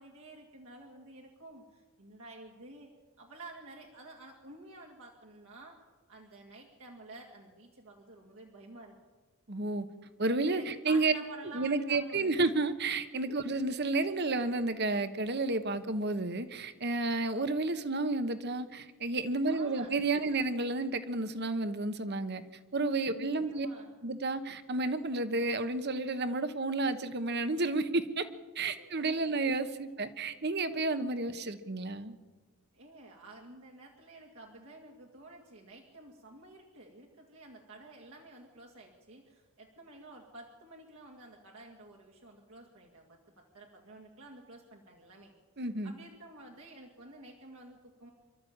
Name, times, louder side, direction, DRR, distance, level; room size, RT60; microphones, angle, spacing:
voice 1, 0.0-2.9 3.2-5.8 6.1-9.0 10.5-12.5 19.4-19.9 23.1-23.9 28.7-29.4 32.7-45.3 45.8-48.1, right 2 dB, 65° right, -1 dB, 2.2 m, -51 dB
voice 2, 9.5-9.9 10.2-11.1 11.5-22.4 22.7-23.7 24.0-28.3 28.5-32.1 45.6-45.9, right 3 dB, 45° right, 11 dB, 1.1 m, -31 dB
25.0 x 12.5 x 8.6 m, 1.4 s
head